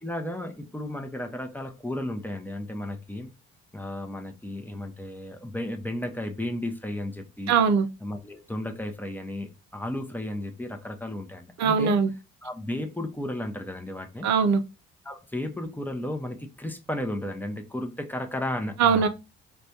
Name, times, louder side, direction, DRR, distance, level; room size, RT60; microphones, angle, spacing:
voice 1, 0.0-3.3 3.7-7.5 8.0-12.0 12.4-14.3 15.0-19.1, left 1 dB, 5° left, 0.6 m, -34 dB
voice 2, 7.5-7.9 11.6-12.1 14.2-14.6 18.8-19.1, right 6 dB, 60° right, 0.5 m, -21 dB
4.2 x 2.2 x 2.7 m
hypercardioid pair, 60°, 32 cm